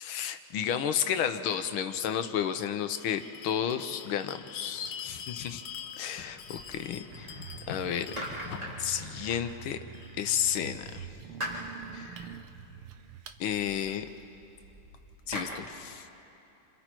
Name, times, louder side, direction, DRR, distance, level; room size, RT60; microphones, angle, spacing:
voice 1, 0.0-5.6 6.0-7.3 7.7-8.1 8.8-9.8 10.2-11.1 11.9-12.3 13.4-14.0 15.3-16.1, left 9 dB, 75° left, 9 dB, 1.7 m, -32 dB
Bell, 2.9-10.2, left 7 dB, 60° left, 1.6 m, -45 dB
sound 1, 6.2-7.4 7.8-10.0 10.6-15.6, equal, 15° right, 3.9 m, -43 dB
sound 2, 7.1-13.4, right 8 dB, 80° right, 1.8 m, -46 dB
29.0 x 26.5 x 4.5 m, 2.9 s
omnidirectional pair, 2.3 m